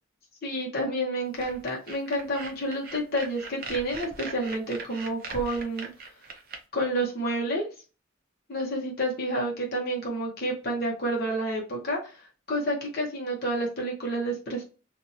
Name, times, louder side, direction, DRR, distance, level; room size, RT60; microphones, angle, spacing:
voice 1, 0.4-5.9 6.7-7.7 8.5-12.2 12.5-14.6, right 1 dB, 50° left, -3 dB, 0.9 m, -29 dB
sound 1, 1.4-6.6, right 4 dB, 50° right, 0.5 m, -40 dB
2.7 x 2.6 x 2.5 m, 0.33 s
head